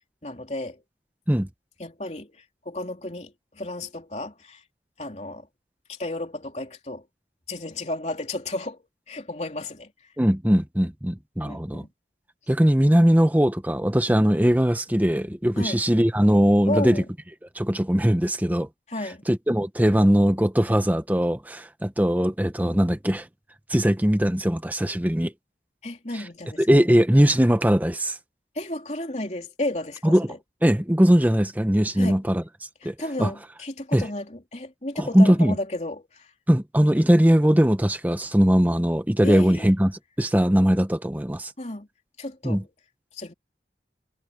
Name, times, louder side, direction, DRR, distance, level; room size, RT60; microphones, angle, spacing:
voice 1, 0.2-0.8 1.8-2.3 2.6-4.6 5.0-5.5 5.9-7.0 7.5-8.8 9.1-9.9 11.4-11.9 15.5-15.8 16.7-17.1 18.9-19.2 25.8-26.6 28.5-30.4 31.9-32.2 32.8-36.3 39.2-39.7 41.6-41.9 42.2-42.7 43.1-43.3, left 1 dB, 40° left, 3.5 m, -33 dB
voice 2, 10.2-11.8 12.5-17.0 17.5-18.7 19.3-23.3 23.7-25.3 26.1-26.2 26.6-28.2 30.0-30.3 30.6-32.4 32.8-33.3 33.9-34.1 35.0-35.6 36.5-41.5 42.4-42.6, equal, 10° right, 0.9 m, -20 dB
head